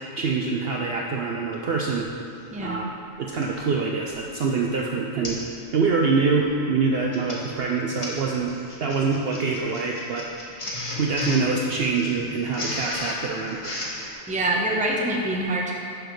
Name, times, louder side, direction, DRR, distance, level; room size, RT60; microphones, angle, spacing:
voice 1, 0.2-2.1 2.6-2.9 3.2-5.4 5.7-10.3 11.0-13.8, right 4 dB, 60° right, 0 dB, 0.7 m, -25 dB
Printer, 3.3-3.6 4.1-4.4 4.6-4.7 5.2-5.5 5.8-6.1 6.9-14.1, left 2 dB, 25° left, 1.1 m, -35 dB
voice 2, 14.3-15.7, right 1 dB, 5° right, -2 dB, 0.7 m, -25 dB
11.5 x 6.3 x 3.2 m, 2.5 s
omnidirectional pair, 1.4 m